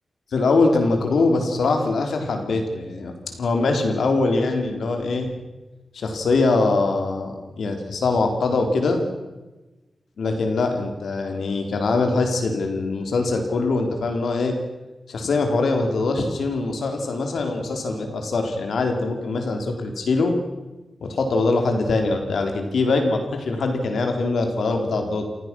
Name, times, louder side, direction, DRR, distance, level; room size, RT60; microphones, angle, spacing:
voice 1, 0.3-5.3 5.9-9.0 10.2-14.6 15.1-20.4 21.0-25.2, left 3 dB, 85° left, 4 dB, 4.0 m, -22 dB
28.5 x 17.0 x 6.3 m, 1.1 s
wide cardioid pair, 150°, 0 cm